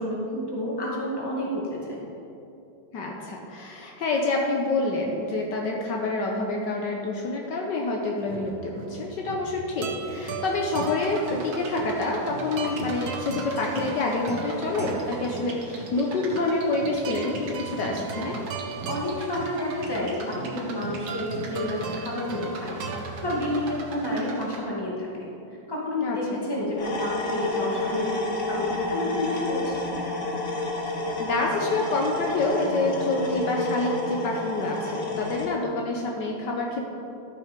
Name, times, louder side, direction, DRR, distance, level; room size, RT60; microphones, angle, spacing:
voice 1, 0.0-2.0 18.9-25.3 25.7-28.2 28.4-29.9, left 1 dB, 10° left, -5 dB, 1.9 m, -30 dB
voice 2, 2.9-18.4 26.0-26.4 31.2-36.8, left 2 dB, 70° left, 0 dB, 1.4 m, -27 dB
sound 1, 8.2-23.8, right 4 dB, 60° right, 1.2 m, -37 dB
sound 2, 11.0-24.6, right 3 dB, 85° right, 2.0 m, -41 dB
sound 3, 26.8-35.5, left 2 dB, 40° left, 1.4 m, -30 dB
13.0 x 5.9 x 5.2 m, 2.8 s
omnidirectional pair, 2.1 m